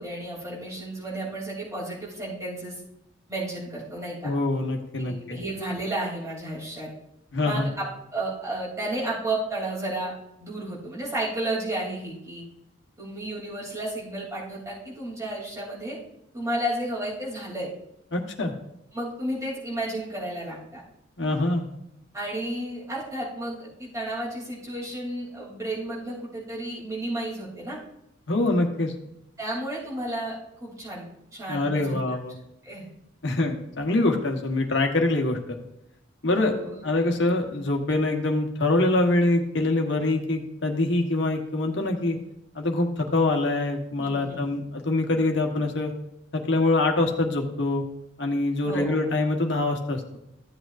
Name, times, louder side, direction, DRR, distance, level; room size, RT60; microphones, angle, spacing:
voice 1, 0.0-2.8 3.3-4.3 5.0-6.9 7.4-7.8 8.1-10.1 10.4-12.4 13.0-16.0 16.3-17.7 18.9-20.8 22.1-27.8 29.4-32.0 32.6-32.9 36.3-36.8 44.0-44.5 48.6-49.0 49.3-49.4, right 1 dB, 15° right, -6 dB, 3.1 m, -32 dB
voice 2, 4.2-5.4 7.3-7.7 18.1-18.5 21.2-21.7 28.3-28.9 31.5-32.3 33.2-35.6 36.2-36.5 36.8-42.2 42.5-45.9 46.3-47.8 48.2-50.0, left 2 dB, 65° left, 3 dB, 1.3 m, -24 dB
14.0 x 7.8 x 2.6 m, 0.84 s
head